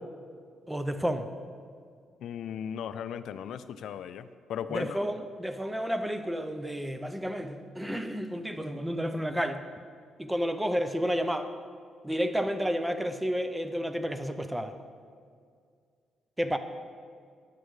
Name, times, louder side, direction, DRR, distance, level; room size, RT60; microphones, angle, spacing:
voice 1, 0.7-1.3 4.7-9.6 10.2-11.5 12.0-14.7 16.4-16.6, equal, 10° right, 9 dB, 0.6 m, -31 dB
voice 2, 2.2-5.0, left 8 dB, 75° left, 13 dB, 0.3 m, -37 dB
10.0 x 8.4 x 3.2 m, 2.1 s
cardioid pair, 90°, 0 cm